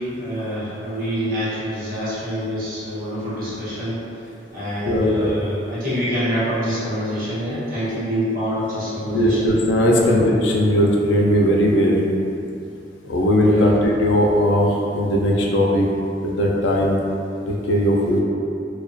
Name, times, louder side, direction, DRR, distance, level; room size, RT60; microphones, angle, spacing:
voice 1, 0.0-4.0 4.5-9.5 9.9-10.1 13.4-13.7, equal, 50° right, -11 dB, 0.9 m, -26 dB
voice 2, 4.8-5.4 9.1-12.1 13.1-15.9 16.2-17.0 17.5-18.2, equal, 85° left, -2 dB, 0.4 m, -18 dB
2.3 x 2.2 x 2.5 m, 2.6 s
head